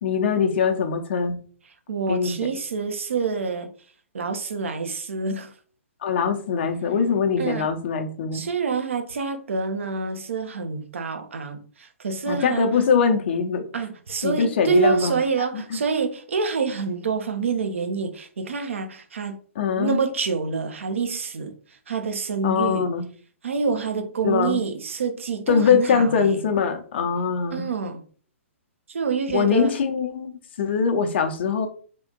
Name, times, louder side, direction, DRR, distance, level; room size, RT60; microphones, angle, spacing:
voice 1, 0.0-1.4 2.1-2.4 6.0-8.5 12.3-13.7 14.2-15.2 15.7-15.8 19.6-20.0 22.4-23.1 24.2-24.6 25.5-27.7 29.3-31.7, left 6 dB, 50° left, 0.7 m, -22 dB
voice 2, 1.9-3.7 4.1-5.5 7.4-7.7 8.3-12.8 13.7-19.4 19.8-21.5 21.9-22.9 23.4-26.4 27.5-28.0 28.9-29.7, right 5 dB, 65° right, 0.7 m, -27 dB
3.8 x 2.5 x 3.8 m
figure-of-eight pair, 120°, 7 cm